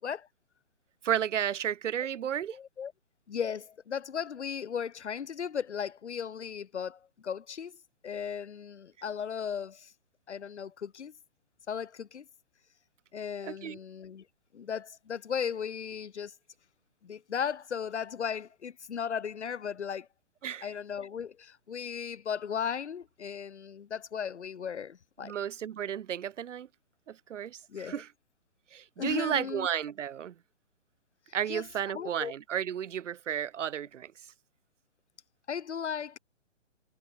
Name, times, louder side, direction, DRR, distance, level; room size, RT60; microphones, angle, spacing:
voice 1, 1.0-2.6 13.4-13.8 20.4-20.7 25.2-26.7 27.1-28.1 28.7-30.3 31.3-34.1, right 9 dB, 80° right, 0.8 m, -33 dB
voice 2, 2.5-2.9 3.3-7.7 8.0-9.9 10.3-11.1 11.7-12.3 13.1-14.2 14.5-16.3 17.0-20.1 20.6-25.3 27.7-28.0 29.0-29.7 31.5-31.6 31.9-32.3 35.5-36.2, left 7 dB, 70° left, 2.8 m, -36 dB
hypercardioid pair, 165°, 36 cm